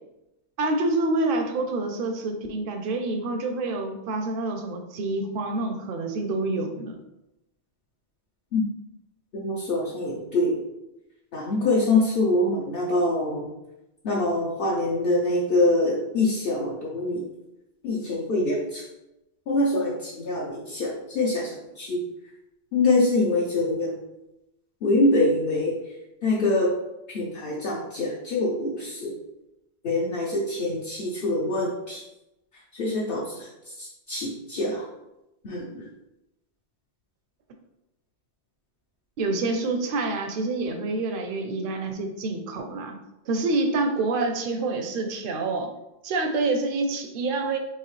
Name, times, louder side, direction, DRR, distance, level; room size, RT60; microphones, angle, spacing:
voice 1, 0.6-7.0 39.2-43.0 43.3-45.7 46.0-47.6, right 2 dB, 60° right, 5 dB, 0.7 m, -27 dB
voice 2, 9.3-10.6 11.3-13.5 14.0-17.2 17.8-18.8 19.5-22.0 22.7-24.0 24.8-25.8 26.2-26.7 27.1-29.1 29.8-32.0 32.7-33.5 33.8-34.8 35.4-35.9, left 2 dB, 60° left, -5 dB, 0.9 m, -24 dB
4.7 x 3.1 x 3.2 m, 0.93 s
omnidirectional pair, 1.1 m